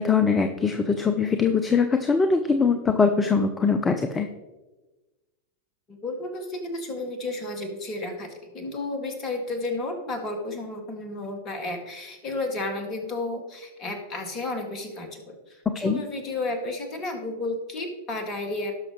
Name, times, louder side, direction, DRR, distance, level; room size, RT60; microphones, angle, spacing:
voice 1, 0.0-4.3 15.7-16.0, left 5 dB, 15° left, 8 dB, 0.7 m, -22 dB
voice 2, 5.9-18.7, left 2 dB, 30° left, 4 dB, 2.2 m, -32 dB
17.5 x 6.3 x 3.2 m, 1.1 s
figure-of-eight pair, 90°, 0 cm